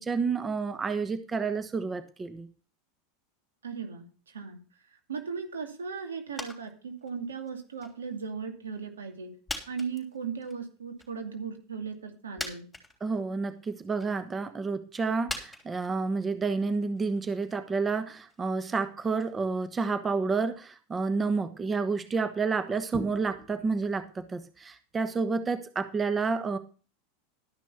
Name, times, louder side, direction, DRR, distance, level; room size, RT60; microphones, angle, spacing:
voice 1, 0.0-2.5 13.0-26.6, right 4 dB, 20° right, 11 dB, 1.2 m, -30 dB
voice 2, 3.6-4.6 5.1-9.3 9.7-12.7, right 5 dB, 90° right, 5 dB, 2.4 m, -37 dB
sound 1, 6.4-6.7 7.0-8.2 8.7-8.8 9.5-10.6 11.0-11.1 12.0-12.1 12.4-13.2 13.7-14.3 15.3-19.4 19.7-19.8, left 2 dB, 10° left, 3.6 m, -42 dB
12.5 x 6.1 x 7.0 m, 0.37 s
hypercardioid pair, 95°, 0 cm